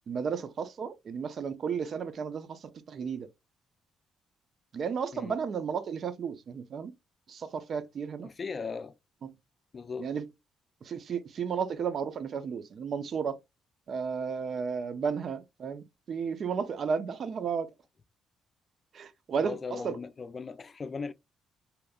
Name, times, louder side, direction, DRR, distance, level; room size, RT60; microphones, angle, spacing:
voice 1, 0.1-3.3 4.7-6.9 7.3-8.3 9.2-9.3 10.0-10.2 10.8-13.4 13.9-17.7 18.9-19.6 19.8-20.0, right 6 dB, 55° right, 0.5 m, -33 dB
voice 2, 8.2-8.9 9.7-10.2 19.4-21.1, left 5 dB, 35° left, 0.5 m, -38 dB
3.5 x 2.9 x 2.3 m
cardioid pair, 90°, 0 cm